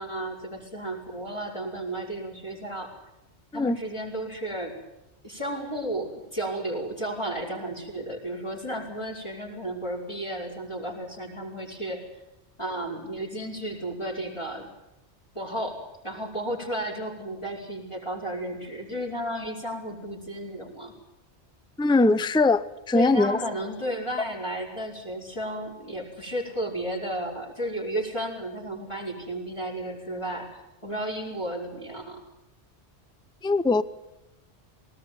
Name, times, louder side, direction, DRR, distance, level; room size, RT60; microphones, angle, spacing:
voice 1, 0.0-3.0 3.5-4.8 5.2-12.1 12.6-14.7 15.4-21.0 22.9-32.2, right 1 dB, 25° left, -4 dB, 5.4 m, -33 dB
voice 2, 21.8-23.4 33.4-33.8, left 3 dB, 5° left, 15 dB, 0.6 m, -21 dB
20.5 x 19.5 x 9.4 m, 0.91 s
omnidirectional pair, 1.2 m